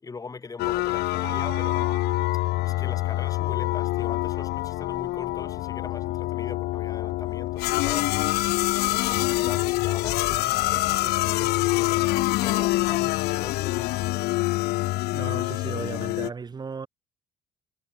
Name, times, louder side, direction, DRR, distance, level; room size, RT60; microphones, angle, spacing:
voice 1, 0.0-2.0 2.6-8.4 8.9-14.0, left 4 dB, 20° left, 5.4 m, -41 dB
sound 1, 0.6-16.3, left 19 dB, 75° left, 0.6 m, -26 dB
sound 2, 0.6-14.2, left 11 dB, 55° left, 4.9 m, -44 dB
sound 3, 1.2-3.7, right 15 dB, 70° right, 2.4 m, -44 dB
voice 2, 15.1-16.9, right 5 dB, 25° right, 4.3 m, -35 dB
cardioid pair, 150°, 17 cm